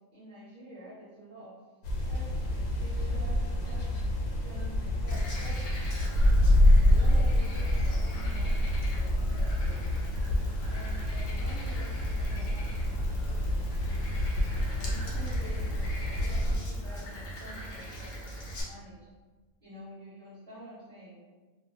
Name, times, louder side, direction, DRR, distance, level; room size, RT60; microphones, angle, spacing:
voice 1, 0.1-1.6 2.1-6.3 6.9-9.8 10.6-13.9 14.6-18.3 18.6-19.0 19.6-21.2, right 1 dB, 15° right, -14 dB, 1.2 m, -48 dB
sound 1, 1.8-16.6, left 1 dB, 90° left, 1.0 m, -27 dB
Frog, 5.1-18.6, equal, 50° left, 0.7 m, -40 dB
2.4 x 2.2 x 2.7 m, 1.3 s
omnidirectional pair, 1.3 m